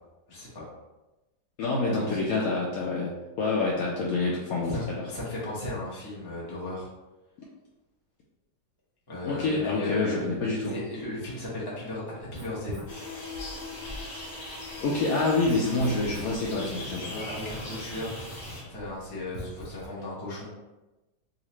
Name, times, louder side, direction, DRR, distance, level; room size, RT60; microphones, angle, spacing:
voice 1, 0.3-0.7 1.9-2.2 4.6-6.9 9.1-10.3 10.7-12.8 17.0-18.2 18.6-20.5, left 2 dB, 20° left, -6 dB, 0.7 m, -36 dB
voice 2, 1.6-3.1 3.4-5.0 9.2-10.8 14.8-17.1, left 3 dB, 70° left, -4 dB, 0.9 m, -27 dB
Writing, 12.2-19.9, equal, 40° right, 0.7 m, -44 dB
sound 1, 12.9-18.6, left 2 dB, 50° left, 1.4 m, -40 dB
3.8 x 2.4 x 3.0 m, 1.0 s
omnidirectional pair, 1.9 m